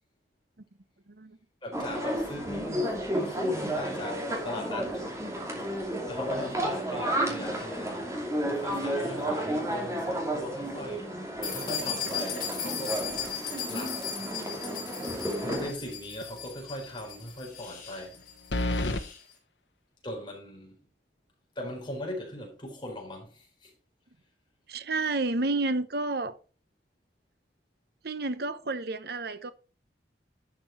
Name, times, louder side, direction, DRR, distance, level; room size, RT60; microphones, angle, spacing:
voice 1, 1.1-1.4 24.7-26.4 28.0-29.5, right 2 dB, 60° right, 0.9 m, -30 dB
voice 2, 1.6-5.1 6.1-13.2 13.7-14.6 15.4-18.3 20.0-20.8 21.6-23.7, left 1 dB, 25° left, 4.2 m, -39 dB
sound 1, 1.7-15.7, right 1 dB, 15° right, 2.6 m, -32 dB
sound 2, 11.4-19.2, left 7 dB, 50° left, 4.2 m, -37 dB
sound 3, 15.4-15.9 16.2-16.3 18.5-19.0, left 1 dB, 85° left, 1.1 m, -29 dB
11.5 x 6.1 x 4.6 m
head